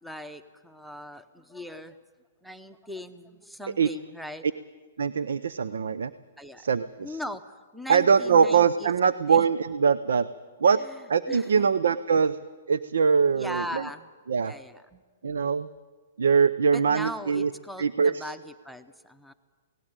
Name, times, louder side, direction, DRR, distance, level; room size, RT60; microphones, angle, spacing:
voice 1, 0.0-2.0 2.4-4.4 6.4-6.7 7.0-7.4 7.7-9.5 10.8-11.0 11.3-11.7 13.3-14.1 14.4-15.0 16.7-19.3, left 1 dB, ahead, 11 dB, 0.8 m, -39 dB
voice 2, 5.0-6.1 6.6-7.2 7.9-10.3 10.6-10.8 11.1-12.4 12.7-13.8 14.3-14.5 15.2-15.7 16.2-17.5 17.8-18.2, right 6 dB, 85° right, 15 dB, 0.6 m, -22 dB
18.0 x 16.0 x 9.0 m, 1.5 s
hypercardioid pair, 140°, 0 cm